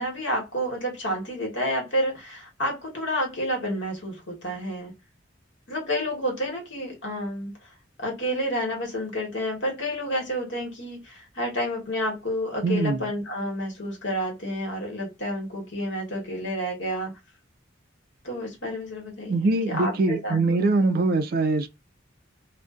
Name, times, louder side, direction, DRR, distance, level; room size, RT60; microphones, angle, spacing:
voice 1, 0.0-4.9 5.7-7.5 8.0-17.1 18.2-19.4 19.7-20.6, equal, 65° left, 1.1 m, -30 dB
voice 2, 12.6-13.1 19.3-21.7, right 3 dB, 50° right, 0.3 m, -23 dB
2.5 x 2.1 x 2.3 m
head